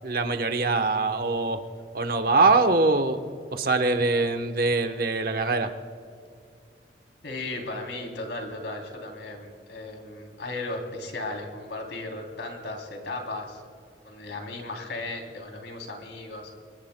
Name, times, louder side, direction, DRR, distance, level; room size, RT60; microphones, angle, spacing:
voice 1, 0.0-1.6 1.9-3.2 3.5-5.7, right 3 dB, 55° right, 7 dB, 1.0 m, -23 dB
voice 2, 7.2-13.6 14.0-16.5, left 2 dB, 90° left, 2 dB, 3.1 m, -36 dB
25.5 x 22.0 x 2.2 m, 2.4 s
head